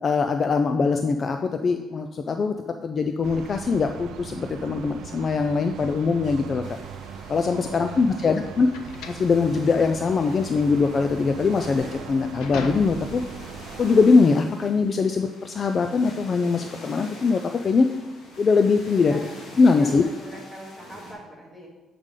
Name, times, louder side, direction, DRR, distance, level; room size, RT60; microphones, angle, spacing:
voice 1, 0.0-2.5 2.8-6.6 7.3-8.7 9.1-13.2 13.8-17.9 18.4-19.2 19.6-20.0, left 4 dB, 40° left, 6 dB, 0.3 m, -22 dB
sound 1, 3.2-14.1, right 8 dB, 70° right, 0.4 m, -40 dB
sound 2, 6.6-21.1, left 2 dB, 65° left, 1.9 m, -46 dB
voice 2, 7.5-8.5 19.0-19.3 19.6-21.7, right 1 dB, 5° left, -4 dB, 2.0 m, -41 dB
sound 3, 7.7-13.3, left 3 dB, 90° left, 0.6 m, -39 dB
8.2 x 5.1 x 3.7 m, 1.1 s
cardioid pair, 120°, 0 cm